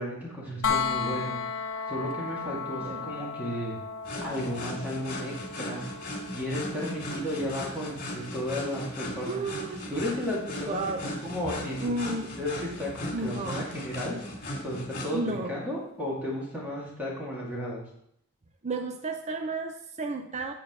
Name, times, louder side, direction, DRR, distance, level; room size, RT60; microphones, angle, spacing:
voice 1, 0.0-1.4 1.9-3.8 4.2-5.8 6.3-9.4 9.9-12.5 12.8-14.2 14.6-17.8, equal, 10° right, -6 dB, 2.2 m, -34 dB
sound 1, 0.6-12.4 14.4-14.5, left 5 dB, 75° left, 0.8 m, -37 dB
voice 2, 2.8-3.1 9.3-9.9 10.7-11.3 11.8-12.4 13.1-13.7 15.1-15.6 18.6-20.5, right 3 dB, 35° right, 4 dB, 0.6 m, -33 dB
sound 2, 4.0-15.1, left 1 dB, 45° left, 2.4 m, -38 dB
8.8 x 7.4 x 3.7 m, 0.73 s
head